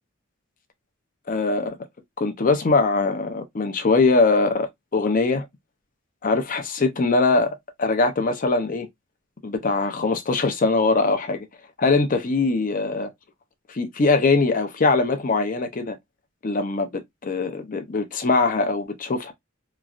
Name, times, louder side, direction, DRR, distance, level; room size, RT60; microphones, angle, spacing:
voice 1, 1.3-1.8 2.2-5.5 6.2-8.9 9.4-11.5 11.8-13.1 13.7-16.0 16.4-19.3, left 3 dB, 40° left, 0.5 m, -22 dB
3.0 x 2.4 x 2.4 m
head